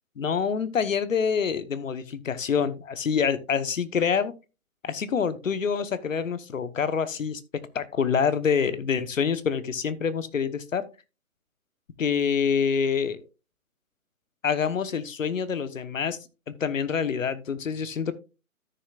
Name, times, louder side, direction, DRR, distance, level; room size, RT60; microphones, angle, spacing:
voice 1, 0.2-4.3 4.8-7.4 7.7-10.8 12.0-13.2 14.4-16.2 16.5-18.1, left 6 dB, 60° left, 14 dB, 1.1 m, -26 dB
13.5 x 6.8 x 2.4 m, 0.29 s
hypercardioid pair, 160°, 43 cm